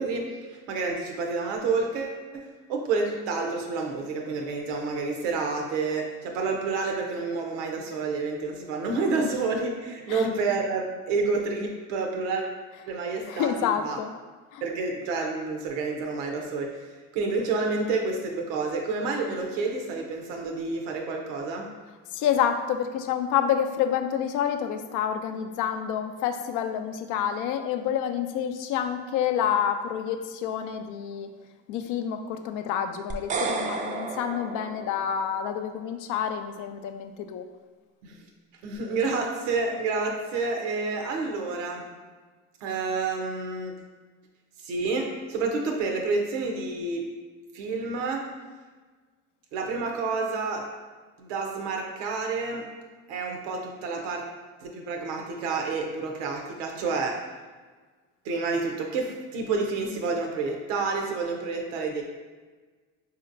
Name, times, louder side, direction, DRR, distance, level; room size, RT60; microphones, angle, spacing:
voice 1, 0.0-12.4 12.9-14.0 14.6-16.9 17.1-21.7 38.0-38.2 38.6-41.9 42.6-43.7 44.6-47.1 47.5-48.3 49.5-50.7 51.2-52.7 53.1-54.2 54.6-57.2 58.2-62.0, right 4 dB, 90° right, 2 dB, 0.7 m, -29 dB
voice 2, 13.3-14.1 14.5-14.6 22.1-31.3 31.7-37.5, left 9 dB, 60° left, 7 dB, 0.5 m, -28 dB
sound 1, 33.1-35.4, right 4 dB, 25° right, 0.4 m, -32 dB
4.2 x 2.8 x 2.5 m, 1.4 s
supercardioid pair, 85°, 35 cm